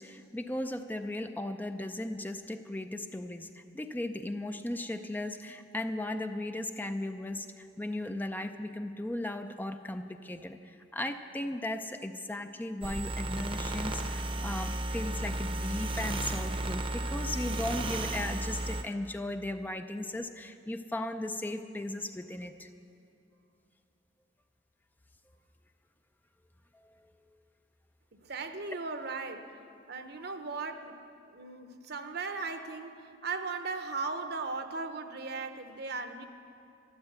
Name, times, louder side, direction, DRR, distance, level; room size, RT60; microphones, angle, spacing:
voice 1, 0.0-22.7 30.2-30.3, left 1 dB, 10° left, 7 dB, 0.4 m, -37 dB
sound 1, 12.8-18.8, right 1 dB, 30° right, 0.8 m, -34 dB
voice 2, 28.2-29.6 29.9-31.0 31.3-36.3, right 4 dB, 60° right, 8 dB, 0.9 m, -37 dB
13.0 x 12.0 x 8.0 m, 2.5 s
head